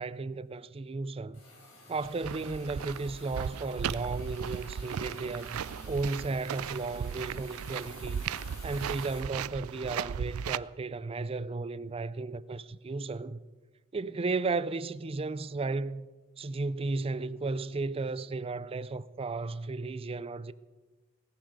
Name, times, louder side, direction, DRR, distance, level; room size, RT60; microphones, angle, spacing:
voice 1, 0.0-1.4 1.9-5.6 5.9-8.2 8.6-13.4 13.9-16.1 16.4-20.5, right 3 dB, 25° right, 0.4 m, -34 dB
Hiss, 1.3-9.2, left 2 dB, 70° left, 7.0 m, -51 dB
sound 1, 2.0-10.6, right 8 dB, 85° right, 0.4 m, -37 dB
18.0 x 10.0 x 6.6 m
head